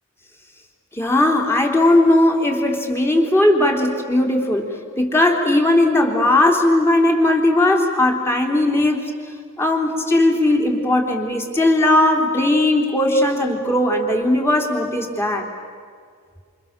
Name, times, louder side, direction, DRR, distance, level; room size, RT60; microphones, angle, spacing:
voice 1, 0.9-4.7 5.0-9.1 9.6-15.5, left 1 dB, 10° left, 2 dB, 3.5 m, -18 dB
28.5 x 28.0 x 7.5 m, 2.1 s
head